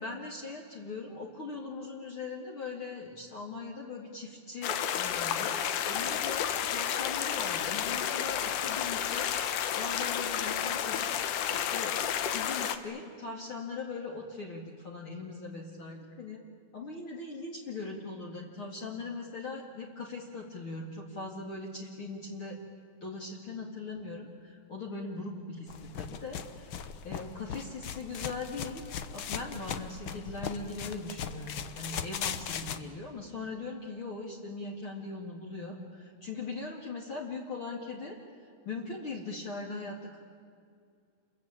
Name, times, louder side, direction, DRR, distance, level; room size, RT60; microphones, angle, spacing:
voice 1, 0.0-16.4 16.7-22.6 23.0-28.8 29.1-38.2 38.6-40.2, left 3 dB, 45° left, -1 dB, 2.9 m, -40 dB
sound 1, 4.6-12.8, left 9 dB, 90° left, 2.7 m, -31 dB
sound 2, 25.7-32.8, left 8 dB, 70° left, 1.2 m, -39 dB
29.0 x 23.0 x 8.8 m, 2.2 s
omnidirectional pair, 3.6 m